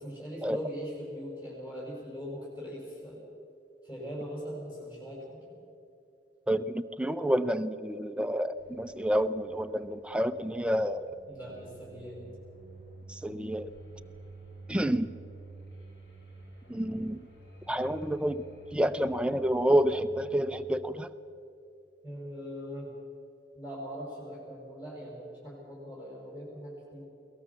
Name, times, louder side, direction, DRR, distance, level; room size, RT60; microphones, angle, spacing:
voice 1, 0.0-3.2 3.8-5.6 11.3-12.2 22.0-22.9 23.5-27.1, equal, 25° left, -5 dB, 5.5 m, -41 dB
voice 2, 6.5-11.1 13.1-13.7 14.7-15.1 16.7-17.2 17.7-18.4 18.7-21.1, equal, 5° right, 10 dB, 0.6 m, -29 dB
sound 1, 8.5-20.7, right 2 dB, 75° left, 5.4 m, -50 dB
21.5 x 18.5 x 7.2 m, 2.6 s
head